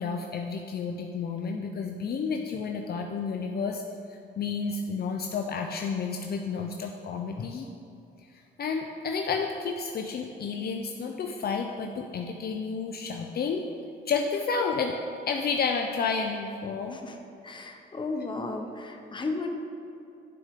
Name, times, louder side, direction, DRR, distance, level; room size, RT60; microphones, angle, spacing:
voice 1, 0.0-3.8 4.1-7.7 8.6-13.6 14.1-15.0 15.3-17.0, left 5 dB, 50° left, 3 dB, 0.6 m, -31 dB
voice 2, 17.4-19.5, left 3 dB, 25° left, 4 dB, 1.0 m, -34 dB
11.0 x 6.4 x 3.7 m, 2.7 s
cardioid pair, 90°, 20 cm